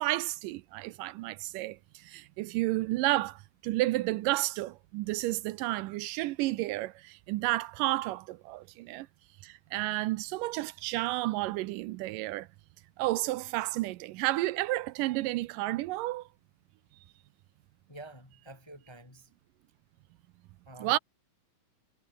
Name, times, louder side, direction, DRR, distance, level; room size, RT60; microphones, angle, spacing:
voice 1, 0.0-1.8 2.1-9.1 9.4-12.5 13.0-16.3 20.8-21.0, right 18 dB, 80° right, 2.2 m, -31 dB
voice 2, 17.9-19.3 20.7-21.0, right 1 dB, 10° left, 1.4 m, -49 dB
omnidirectional pair, 3.9 m